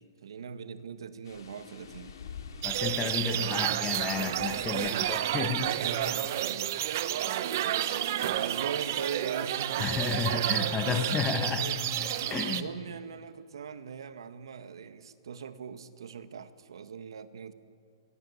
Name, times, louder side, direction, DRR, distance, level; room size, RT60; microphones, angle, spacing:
voice 1, 0.0-2.2 3.2-3.9 4.7-5.3 5.6-6.8 7.3-10.2 10.9-11.0 11.6-11.9 12.4-17.5, right 7 dB, 85° right, 1.8 m, -41 dB
sound 1, 1.2-6.4, left 6 dB, 65° left, 4.2 m, -48 dB
voice 2, 2.6-5.7 9.8-12.7, left 5 dB, 15° left, 1.4 m, -32 dB
sound 2, 2.6-12.6, right 12 dB, 40° right, 1.1 m, -30 dB
30.0 x 22.5 x 8.6 m
hypercardioid pair, 175°, 2 cm